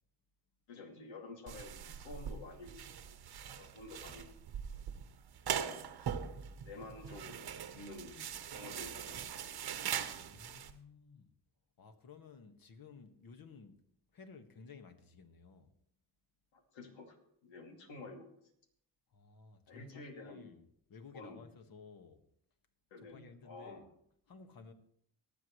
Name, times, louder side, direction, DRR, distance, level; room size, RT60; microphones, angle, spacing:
voice 1, 0.7-3.2 3.5-4.4 5.5-5.8 6.6-9.2 9.5-9.6 16.5-17.2 17.4-18.3 19.7-20.5 21.1-21.4 22.9-23.8, left 2 dB, 80° left, 2.5 m, -50 dB
sound 1, 1.5-10.7, right 8 dB, 55° right, 1.1 m, -42 dB
voice 2, 10.1-11.3 11.8-13.9 14.1-15.7 19.1-22.3 23.0-23.9 24.3-24.7, left 5 dB, 50° left, 1.6 m, -55 dB
24.5 x 8.3 x 3.2 m
cardioid pair, 75°, 45 cm